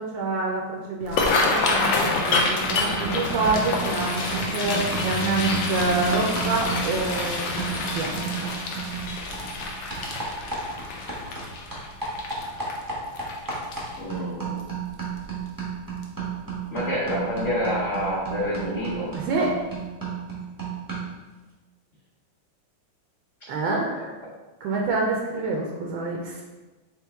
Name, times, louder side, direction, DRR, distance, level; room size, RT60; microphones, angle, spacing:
voice 1, 0.0-8.5 19.1-19.5 23.5-24.2 24.6-26.4, right 3 dB, 80° right, -1 dB, 1.4 m, -27 dB
sound 1, 1.0-14.1 14.6-14.9 15.2-15.6 16.0-16.2 17.4-17.6 18.0-18.1 18.6-18.7, left 3 dB, 80° left, 1.4 m, -27 dB
sound 2, 2.3-11.5 11.7-21.2, right 5 dB, 25° right, 0.4 m, -33 dB
voice 2, 14.0-14.6 16.7-19.1, left 1 dB, 45° left, -9 dB, 1.1 m, -27 dB
4.5 x 3.1 x 3.4 m, 1.2 s
omnidirectional pair, 2.1 m